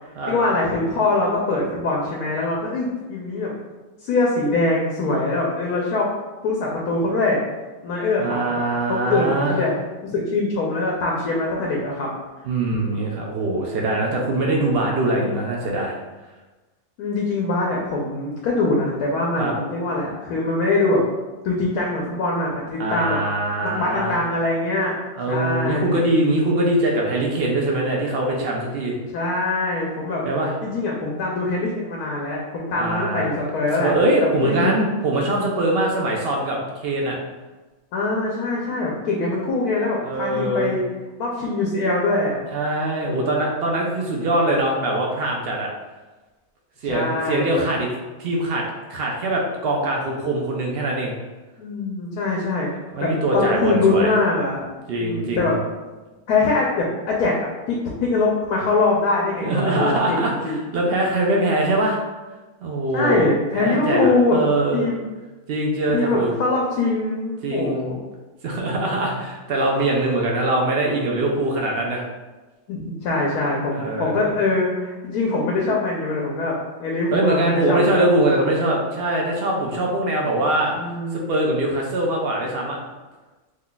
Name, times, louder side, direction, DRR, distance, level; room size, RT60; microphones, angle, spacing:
voice 1, 0.0-3.5 4.0-6.1 6.4-7.4 7.8-8.6 8.9-9.7 10.1-12.1 17.0-21.0 21.4-23.2 23.6-25.0 25.3-25.9 29.1-30.2 30.6-33.9 34.2-34.8 37.9-40.8 41.2-42.4 46.8-47.6 51.6-52.7 53.0-54.7 55.0-55.5 56.3-60.6 62.9-64.4 64.7-65.0 65.9-68.0 72.7-78.1 80.8-81.4, left 3 dB, 85° left, -2 dB, 1.1 m, -23 dB
voice 2, 8.2-9.6 12.5-15.9 19.4-19.5 22.8-24.2 25.2-28.9 30.2-30.5 32.7-33.3 33.8-37.2 40.0-40.8 42.5-45.7 46.8-47.9 48.2-48.6 48.9-51.1 52.9-54.1 54.9-55.5 59.4-62.0 62.6-63.3 63.6-64.9 65.5-66.3 67.4-67.9 68.4-72.0 73.7-74.2 77.1-80.8 81.1-82.8, right 1 dB, 70° right, -1 dB, 0.5 m, -22 dB
3.1 x 2.2 x 3.8 m, 1.2 s
omnidirectional pair, 1.6 m